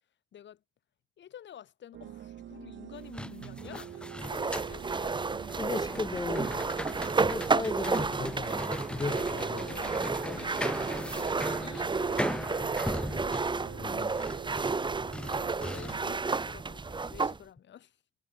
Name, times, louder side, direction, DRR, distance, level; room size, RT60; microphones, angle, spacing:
voice 1, 0.3-0.6 1.2-5.2 9.0-13.7 15.2-18.0, left 10 dB, 65° left, 5.2 m, -49 dB
sound 1, 1.9-16.2, right 11 dB, 70° right, 4.4 m, -45 dB
sound 2, 3.0-16.2, left 1 dB, 5° left, 1.4 m, -39 dB
sound 3, 4.2-17.4, right 4 dB, 25° right, 1.1 m, -32 dB
voice 2, 5.6-6.7 7.2-9.2 9.5-9.6 13.7-14.1, left 3 dB, 20° left, 0.9 m, -36 dB
cardioid pair, 90°, 20 cm